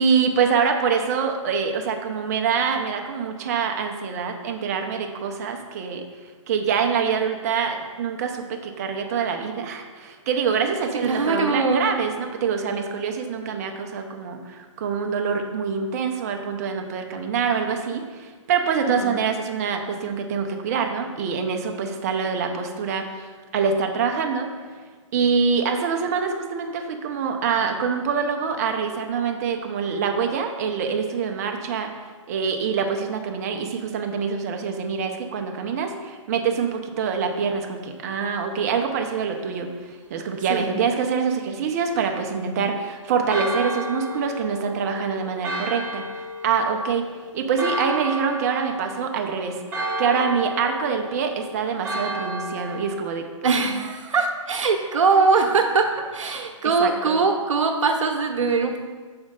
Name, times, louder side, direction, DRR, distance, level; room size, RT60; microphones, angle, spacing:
voice 1, 0.0-6.0 6.5-24.5 25.1-31.9 32.3-39.7 40.1-46.0 46.4-47.0 47.3-53.3 56.8-57.2, right 6 dB, 30° right, 4 dB, 0.5 m, -25 dB
voice 2, 11.0-11.9 18.9-19.2 40.5-40.7 53.4-58.8, right 4 dB, 70° right, 3 dB, 0.8 m, -22 dB
Church bell, 43.3-53.0, right 1 dB, 10° right, 0.9 m, -32 dB
6.2 x 4.3 x 3.7 m, 1.4 s
hypercardioid pair, 155°, 17 cm